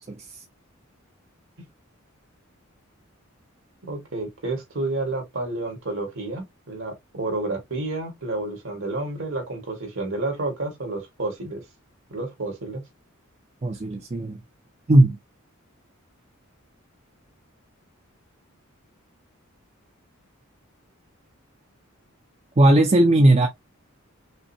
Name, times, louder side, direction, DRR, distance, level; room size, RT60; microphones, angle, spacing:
voice 1, 3.8-11.6 12.1-12.8, right 2 dB, 65° right, 2.0 m, -30 dB
voice 2, 13.6-14.4 14.9-15.2 22.6-23.5, right 1 dB, 30° right, 0.5 m, -17 dB
5.3 x 2.2 x 2.7 m
head